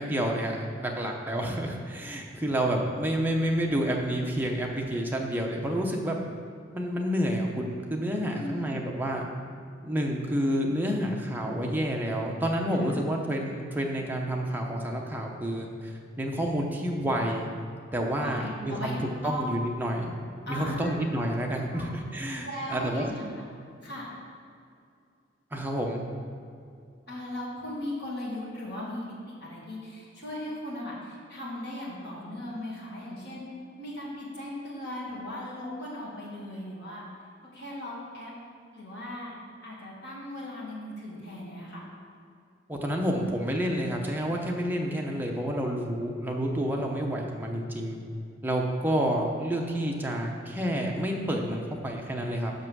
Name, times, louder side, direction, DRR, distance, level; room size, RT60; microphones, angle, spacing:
voice 1, 0.0-6.2 6.7-9.2 9.8-17.5 17.9-20.1 20.5-23.0 25.5-26.0 42.7-48.0 48.4-52.5, equal, 10° right, 0 dB, 0.7 m, -29 dB
voice 2, 8.3-8.9 12.8-13.0 18.1-19.5 20.5-21.0 21.7-21.9 22.4-23.4 23.8-24.1 27.1-29.0 29.3-33.4 33.8-37.0 37.5-38.3 38.7-39.3 39.6-41.8, left 1 dB, 60° left, -6 dB, 2.0 m, -37 dB
6.1 x 5.5 x 6.1 m, 2.4 s
head